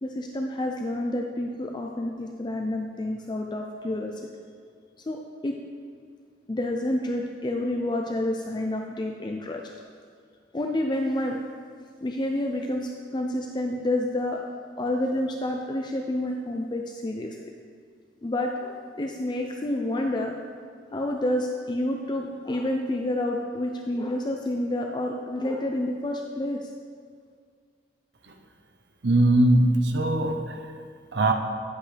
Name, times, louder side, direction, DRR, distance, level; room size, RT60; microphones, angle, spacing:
voice 1, 0.0-4.1 5.1-5.6 6.5-9.7 10.5-11.4 12.0-14.4 14.8-17.4 18.2-20.4 20.9-26.7, left 1 dB, 25° left, 2 dB, 0.4 m, -29 dB
voice 2, 29.0-30.6 31.1-31.3, right 1 dB, 75° right, 4 dB, 0.8 m, -20 dB
10.5 x 8.3 x 3.3 m, 2.1 s
head